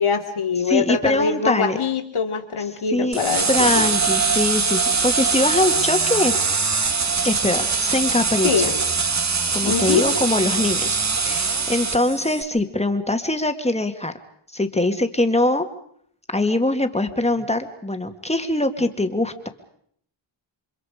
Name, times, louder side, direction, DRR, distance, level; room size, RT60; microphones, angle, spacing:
voice 1, 0.0-3.9 8.4-8.7 9.6-10.0, left 6 dB, 75° left, 4 dB, 3.0 m, -23 dB
voice 2, 0.7-1.8 2.9-3.2 3.5-6.3 7.2-8.7 9.5-14.1 14.5-15.7 16.3-19.5, left 1 dB, 15° left, 7 dB, 1.9 m, -22 dB
sound 1, 3.1-12.4, right 4 dB, 35° right, 1.3 m, -22 dB
29.0 x 25.5 x 5.0 m, 0.66 s
wide cardioid pair, 125°, 49 cm